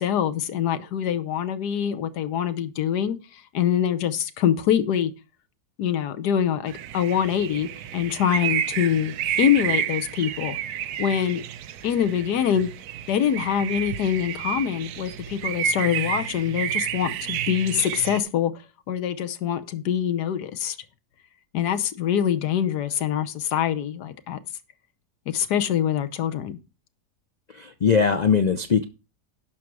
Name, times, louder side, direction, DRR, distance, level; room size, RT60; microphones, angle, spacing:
voice 1, 0.0-5.1 5.8-10.6 11.0-11.4 11.8-12.7 13.1-18.5 18.9-20.8 21.5-24.4 25.3-26.6, left 9 dB, 80° left, 1.5 m, -24 dB
sound 1, 6.7-18.2, right 9 dB, 75° right, 1.1 m, -30 dB
voice 2, 27.5-28.8, left 6 dB, 55° left, 0.4 m, -20 dB
11.5 x 6.2 x 4.7 m
omnidirectional pair, 1.7 m